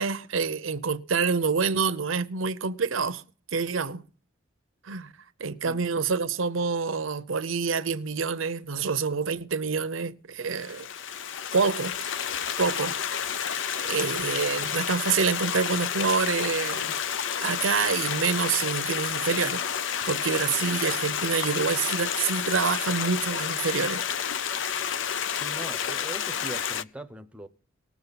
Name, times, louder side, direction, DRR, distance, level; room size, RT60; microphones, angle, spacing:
voice 1, 0.0-3.2 3.5-4.0 4.8-5.1 5.4-10.8 11.5-11.9 12.6-12.9 13.4-17.0 17.4-19.6 20.1-24.0, right 5 dB, 75° right, 0.7 m, -27 dB
Stream, 10.5-26.8, left 8 dB, 65° left, 0.5 m, -30 dB
voice 2, 25.3-27.5, right 1 dB, 5° right, 0.8 m, -41 dB
19.0 x 7.0 x 4.0 m
head